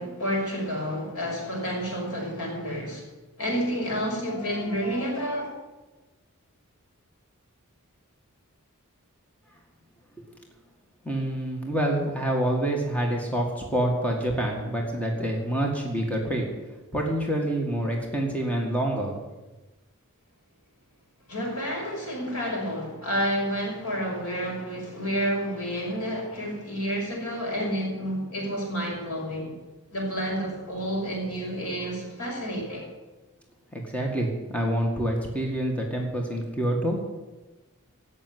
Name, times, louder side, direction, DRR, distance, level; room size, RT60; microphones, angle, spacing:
voice 1, 0.0-3.0 3.4-5.5 21.3-29.5 29.9-32.9, equal, 85° left, -2 dB, 5.7 m, -30 dB
voice 2, 11.1-16.5 16.9-19.2 33.7-37.0, right 1 dB, 5° left, 0 dB, 1.9 m, -27 dB
16.0 x 6.5 x 9.4 m, 1.1 s
head